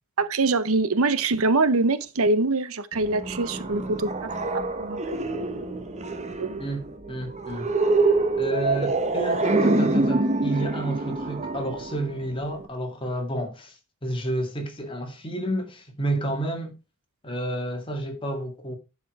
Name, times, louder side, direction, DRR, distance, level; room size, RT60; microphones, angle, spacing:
voice 1, 0.2-4.3 4.5-5.6 6.3-6.6, right 3 dB, 70° right, 0.8 m, -24 dB
sound 1, 2.9-12.7, right 2 dB, 30° right, 1.0 m, -26 dB
voice 2, 6.6-7.7 8.3-13.8 14.0-16.7 17.2-18.8, right 1 dB, 25° left, 2.0 m, -30 dB
10.5 x 5.0 x 4.7 m
head